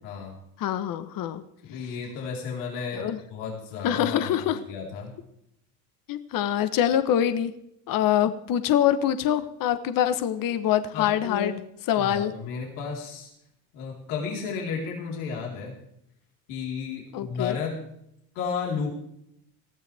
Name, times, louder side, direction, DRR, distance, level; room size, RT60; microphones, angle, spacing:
voice 1, 0.0-0.4 1.6-5.1 10.9-11.5 12.0-13.3 13.7-15.8 16.5-17.7 18.3-18.9, left 5 dB, 85° left, -2 dB, 4.1 m, -33 dB
voice 2, 0.6-1.4 2.9-3.2 3.8-4.6 6.1-7.5 7.9-11.6 11.9-12.3 17.1-17.6, left 10 dB, 50° left, 11 dB, 1.1 m, -24 dB
19.5 x 14.5 x 3.4 m, 0.78 s
supercardioid pair, 100°, 42 cm